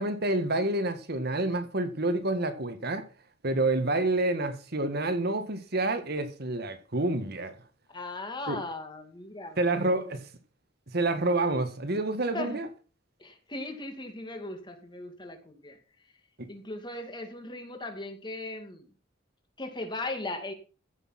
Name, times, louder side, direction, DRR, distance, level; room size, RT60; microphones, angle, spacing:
voice 1, 0.0-3.1 3.4-7.6 8.5-8.6 9.6-10.3 10.9-12.7 16.4-16.5, right 2 dB, 55° right, 1.7 m, -28 dB
voice 2, 7.9-10.2 12.3-12.6 13.2-15.8 16.5-18.9 19.6-20.5, left 2 dB, 25° left, 2.3 m, -38 dB
15.0 x 6.6 x 5.9 m
head